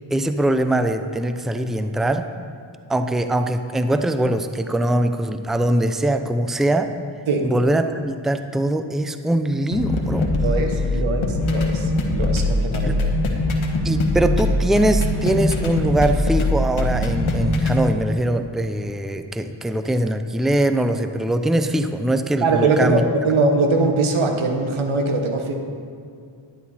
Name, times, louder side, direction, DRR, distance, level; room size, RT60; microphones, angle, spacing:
voice 1, 0.1-2.3 2.9-6.9 7.4-10.3 12.8-13.0 13.8-23.0, right 1 dB, ahead, 9 dB, 0.5 m, -22 dB
sound 1, 9.7-17.8, left 2 dB, 85° left, 1.2 m, -22 dB
voice 2, 10.4-13.1 22.4-25.5, right 3 dB, 85° right, 4 dB, 1.2 m, -21 dB
10.5 x 9.5 x 4.3 m, 2.3 s
cardioid pair, 45°, 47 cm